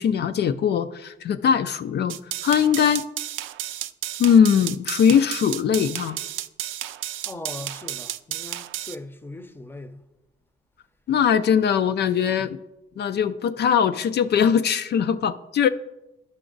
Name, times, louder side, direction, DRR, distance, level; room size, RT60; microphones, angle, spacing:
voice 1, 0.0-3.0 4.2-6.2 11.1-12.6 13.0-15.7, left 8 dB, 55° left, 0.4 m, -21 dB
sound 1, 2.1-8.9, right 13 dB, 85° right, 0.4 m, -32 dB
voice 2, 7.3-10.0, left 2 dB, 10° left, 0.7 m, -39 dB
11.0 x 5.9 x 3.9 m
cardioid pair, 90°, 20 cm